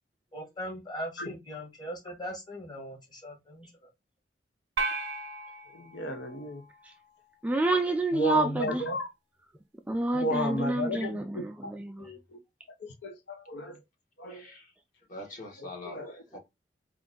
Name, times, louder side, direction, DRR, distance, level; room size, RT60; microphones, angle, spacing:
voice 1, 0.3-3.9, equal, 25° left, 1.3 m, -40 dB
sound 1, 4.8-7.2, right 3 dB, 85° right, 0.7 m, -36 dB
voice 2, 5.7-6.6 8.1-9.1 10.1-11.4 12.8-13.8 14.2-14.4 15.8-16.1, left 1 dB, 75° left, 0.8 m, -33 dB
voice 3, 7.4-8.8 9.9-12.1, right 2 dB, 10° right, 0.3 m, -28 dB
voice 4, 14.3-14.7 15.1-16.4, left 2 dB, 45° left, 1.6 m, -44 dB
4.4 x 2.5 x 3.8 m
head